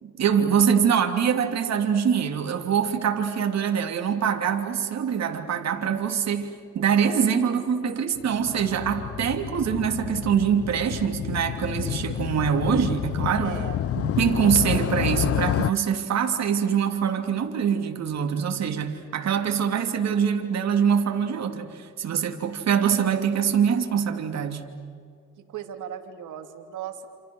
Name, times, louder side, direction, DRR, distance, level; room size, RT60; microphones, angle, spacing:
voice 1, 0.0-13.6 13.9-24.6, right 7 dB, 60° right, 4 dB, 3.1 m, -24 dB
Motorcycle, 8.2-15.7, left 11 dB, 50° left, 0.6 m, -29 dB
voice 2, 13.4-13.8 14.1-14.5 25.4-27.1, right 9 dB, 80° right, 5 dB, 2.9 m, -38 dB
28.0 x 28.0 x 6.4 m, 2.3 s
cardioid pair, 90°, 30 cm